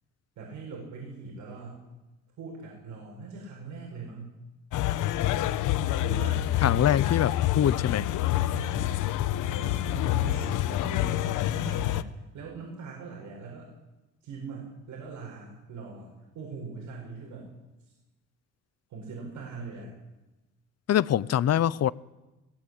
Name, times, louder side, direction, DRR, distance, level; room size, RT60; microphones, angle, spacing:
voice 1, 0.4-1.8 2.4-4.4 6.0-6.5 8.5-8.9 9.5-12.1 12.3-13.7 14.2-17.5 17.9-18.0 18.9-19.9, right 4 dB, 75° right, 7.6 m, -41 dB
sound 1, 4.7-12.0, left 13 dB, 90° left, 1.1 m, -27 dB
voice 2, 6.6-8.1 20.9-21.9, left 10 dB, 55° left, 0.8 m, -24 dB
22.0 x 19.5 x 8.9 m
cardioid pair, 90°, 30 cm